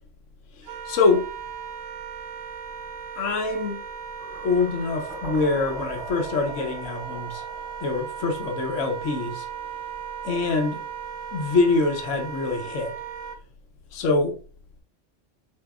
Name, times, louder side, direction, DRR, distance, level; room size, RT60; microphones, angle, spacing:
voice 1, 0.5-1.3 3.2-3.8 4.4-7.4 7.8-9.5 10.2-10.8 11.3-13.0 13.9-14.4, left 3 dB, 80° left, 1.1 m, -24 dB
Wind instrument woodwind instrument, 0.6-13.4, right 8 dB, 90° right, 1.0 m, -37 dB
sound 1, 4.2-9.1, equal, 5° right, 1.2 m, -41 dB
4.6 x 4.4 x 2.4 m
omnidirectional pair, 1.3 m